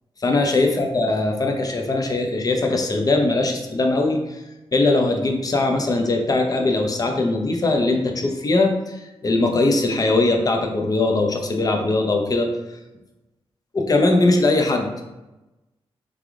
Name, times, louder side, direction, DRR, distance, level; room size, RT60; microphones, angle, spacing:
voice 1, 0.2-4.4 4.7-12.5 13.7-15.1, left 2 dB, 35° left, 3 dB, 0.6 m, -20 dB
3.6 x 3.3 x 3.6 m, 1.0 s
cardioid pair, 80°, 10 cm